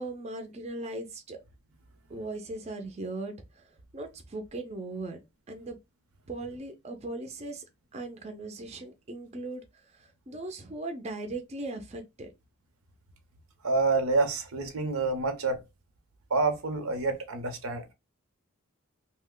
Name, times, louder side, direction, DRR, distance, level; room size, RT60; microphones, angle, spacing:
voice 1, 0.0-1.4 2.1-5.2 5.5-5.8 6.3-7.6 7.9-12.3, right 2 dB, 30° right, 0.4 m, -38 dB
voice 2, 13.6-15.6 16.3-17.9, right 3 dB, 90° right, 0.7 m, -28 dB
2.8 x 2.1 x 3.6 m
head